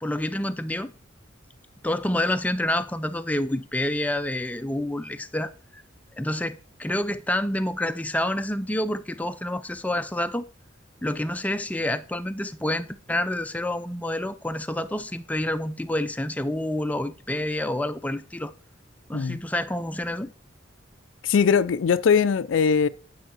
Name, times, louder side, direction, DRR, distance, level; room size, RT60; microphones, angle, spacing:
voice 1, 0.0-0.9 1.8-5.8 6.2-10.4 11.0-18.5 19.1-20.3, left 1 dB, 10° left, 0.4 m, -28 dB
voice 2, 21.2-22.9, left 6 dB, 75° left, 0.4 m, -20 dB
8.9 x 5.6 x 4.4 m
head